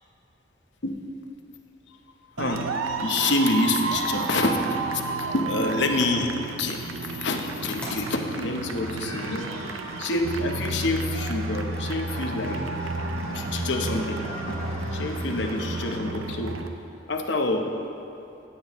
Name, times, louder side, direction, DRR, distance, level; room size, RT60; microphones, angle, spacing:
sound 1, 2.4-16.7, right 3 dB, 90° right, 0.6 m, -32 dB
voice 1, 3.0-4.8 5.3-6.3 6.6-9.5 10.0-12.6 13.3-14.2 14.5-14.6 14.9-16.5 17.1-17.7, left 2 dB, 65° left, 3 dB, 0.8 m, -27 dB
sound 2, 7.8-16.0, equal, 5° left, 2.0 m, -39 dB
16.0 x 8.2 x 3.1 m, 2.7 s
head